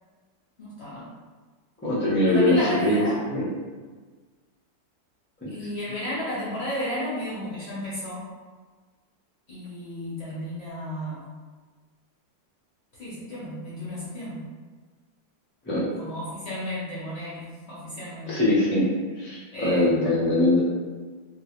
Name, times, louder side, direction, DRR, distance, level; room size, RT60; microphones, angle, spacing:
voice 1, 0.6-1.1 2.3-3.2 5.5-8.2 9.5-11.3 13.0-14.5 16.0-18.4 19.5-20.1, equal, 50° left, -8 dB, 0.8 m, -33 dB
voice 2, 1.8-3.0 3.3-3.4 5.4-5.7 15.6-15.8 18.3-18.9 19.2-20.6, left 1 dB, 15° left, -9 dB, 0.3 m, -22 dB
3.0 x 2.7 x 3.0 m, 1.4 s
omnidirectional pair, 2.0 m